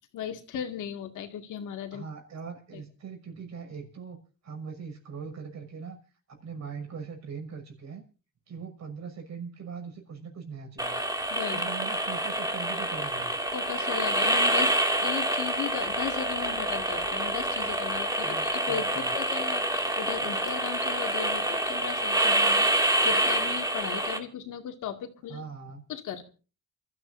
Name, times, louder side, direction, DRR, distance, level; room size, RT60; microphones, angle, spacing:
voice 1, 0.1-2.0 2.7-2.8 11.3-11.6 13.5-14.8 15.0-25.4 25.9-26.2, left 8 dB, 80° left, 5 dB, 2.2 m, -36 dB
voice 2, 1.9-4.2 4.4-6.0 6.3-8.0 8.5-11.0 11.5-13.4 18.2-19.2 25.3-25.8, right 6 dB, 60° right, 4 dB, 6.2 m, -41 dB
sound 1, 10.8-24.2, right 1 dB, 10° right, 2.4 m, -27 dB
29.0 x 13.0 x 2.7 m, 0.35 s
cardioid pair, 90°, 30 cm